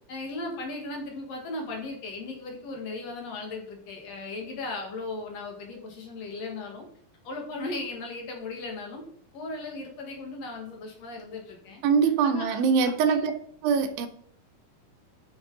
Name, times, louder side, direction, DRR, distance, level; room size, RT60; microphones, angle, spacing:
voice 1, 0.1-6.9 7.2-9.0 9.3-11.8 12.2-12.6 12.8-13.3, left 2 dB, 50° left, 2.4 m, -37 dB
voice 2, 11.8-13.3 13.6-14.1, right 6 dB, 75° right, 2.5 m, -23 dB
9.3 x 6.2 x 3.9 m
omnidirectional pair, 4.4 m